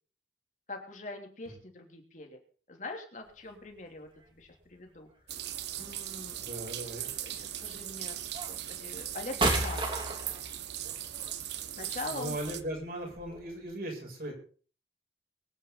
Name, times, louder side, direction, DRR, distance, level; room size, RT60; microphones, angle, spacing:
voice 1, 0.7-2.4 2.7-5.1 5.8-6.4 7.2-10.0 11.8-12.6, left 2 dB, 45° left, 3 dB, 3.2 m, -43 dB
sound 1, 3.3-3.4 4.1-4.7 6.1-6.7 7.6-7.8 8.3-13.7, right 2 dB, 30° right, 3.3 m, -34 dB
sound 2, 5.3-12.6, right 11 dB, 75° right, 1.2 m, -39 dB
voice 2, 6.4-7.1 12.1-14.3, right 1 dB, 55° right, 0 dB, 7.4 m, -38 dB
23.0 x 10.0 x 4.1 m, 0.42 s
head